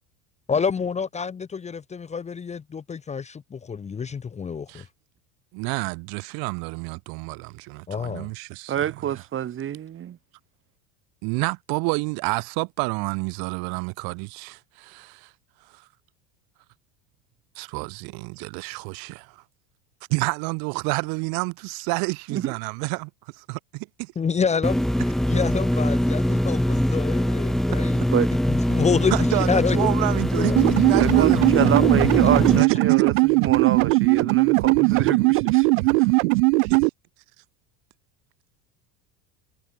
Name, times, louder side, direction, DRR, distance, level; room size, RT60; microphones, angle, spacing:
voice 1, 0.5-4.8 7.9-8.3 24.2-24.8 25.3-29.1 29.5-29.9 30.4-30.6 31.8-31.9, left 6 dB, 15° left, 1.2 m, -27 dB
voice 2, 5.5-9.2 11.2-15.3 15.6-15.9 17.6-19.4 20.1-24.1 29.1-31.8 32.5-32.7 33.0-33.1 36.6-36.9, right 33 dB, 60° right, 2.0 m, -29 dB
voice 3, 8.7-10.2 22.3-22.5 28.1-28.3 31.0-33.1 33.4-35.7 36.0-36.1, right 10 dB, 30° right, 3.1 m, -27 dB
sound 1, 24.6-32.6, equal, ahead, 1.4 m, -22 dB
sound 2, 30.6-36.9, right 28 dB, 85° right, 0.5 m, -19 dB
cardioid pair, 145°, 40 cm